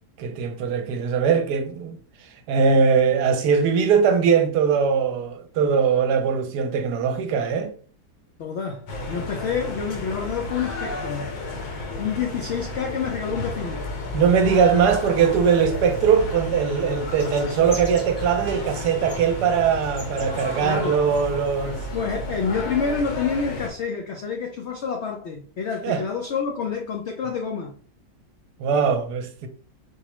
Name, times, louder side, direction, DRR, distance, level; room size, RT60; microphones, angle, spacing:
voice 1, 0.2-2.0 2.5-7.7 14.1-21.8 25.8-26.0 28.6-29.5, right 6 dB, 75° right, 1.1 m, -21 dB
voice 2, 8.4-11.3 12.0-13.8 20.6-21.0 21.9-27.7, left 6 dB, 90° left, 0.6 m, -28 dB
sound 1, 8.9-23.7, left 2 dB, 70° left, 1.2 m, -32 dB
sound 2, 17.1-22.4, right 3 dB, 35° left, 0.5 m, -42 dB
4.7 x 2.0 x 2.9 m
omnidirectional pair, 1.8 m